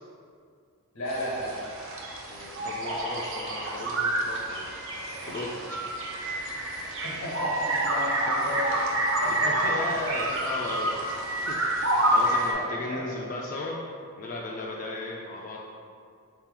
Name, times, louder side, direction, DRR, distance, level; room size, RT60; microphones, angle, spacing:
voice 1, 0.9-1.5 6.8-8.8 9.2-9.7 12.5-13.0, left 1 dB, 80° left, -6 dB, 1.1 m, -34 dB
sound 1, 1.1-12.5, right 1 dB, 60° right, 0.6 m, -28 dB
voice 2, 2.3-4.8 5.2-5.8 9.4-13.8 14.2-15.6, left 2 dB, 35° left, -2 dB, 0.3 m, -35 dB
3.9 x 2.9 x 3.7 m, 2.2 s
head